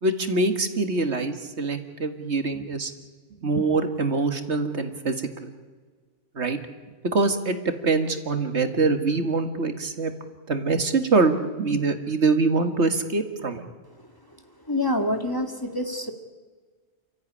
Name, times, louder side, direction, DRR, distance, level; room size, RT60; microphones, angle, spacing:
voice 1, 0.0-2.9 3.4-5.5 6.4-6.6 7.1-7.6 7.8-10.1 10.5-13.7, right 3 dB, 70° right, 7 dB, 2.1 m, -24 dB
voice 2, 14.7-16.1, left 1 dB, 20° left, 5 dB, 1.9 m, -26 dB
29.0 x 14.0 x 9.9 m, 1.5 s
omnidirectional pair, 1.2 m